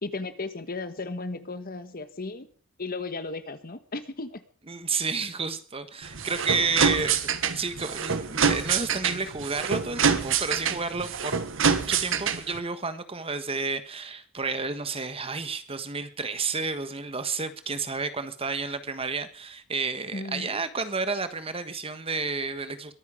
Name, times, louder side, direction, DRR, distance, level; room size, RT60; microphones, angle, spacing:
voice 1, 0.0-2.5 2.8-4.4 20.1-20.5, left 3 dB, 45° left, 11 dB, 1.4 m, -35 dB
voice 2, 4.7-7.2 7.5-22.9, right 4 dB, 30° right, 11 dB, 1.4 m, -31 dB
sound 1, 6.0-12.6, right 6 dB, 65° right, 1.4 m, -26 dB
22.5 x 9.4 x 5.0 m, 0.42 s
head